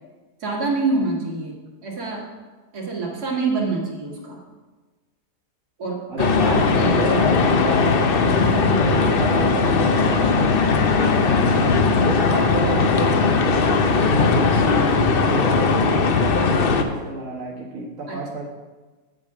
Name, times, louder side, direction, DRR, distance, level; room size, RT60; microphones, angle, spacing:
voice 1, 0.4-1.5 1.8-2.3 2.7-4.4 5.8-7.1 18.1-18.2, right 3 dB, 75° right, -3 dB, 2.5 m, -26 dB
voice 2, 6.1-11.6 12.0-18.5, right 1 dB, 60° right, -3 dB, 1.7 m, -30 dB
sound 1, 6.2-16.8, left 4 dB, 50° left, 0.7 m, -18 dB
8.5 x 6.4 x 6.0 m, 1.3 s
omnidirectional pair, 1.7 m